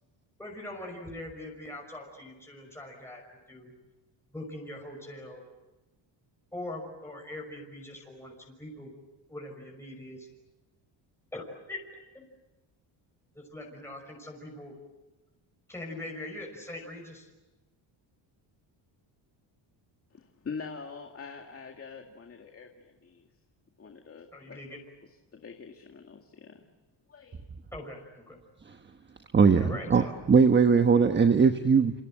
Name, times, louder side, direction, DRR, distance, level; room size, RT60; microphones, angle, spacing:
voice 1, 0.4-3.2 3.5-3.7 4.3-5.4 6.5-8.9 9.3-10.3 11.3-12.3 13.3-14.7 15.7-17.3 24.3-24.8 27.7-28.4 29.5-30.2, left 1 dB, 5° left, 0 dB, 5.8 m, -42 dB
voice 2, 20.1-23.3 23.8-24.6 25.3-26.7 27.1-27.5, left 5 dB, 30° left, 3 dB, 2.1 m, -44 dB
voice 3, 29.3-31.9, right 5 dB, 25° right, 7 dB, 1.2 m, -20 dB
29.0 x 26.5 x 7.7 m, 1.1 s
cardioid pair, 125°, 45 cm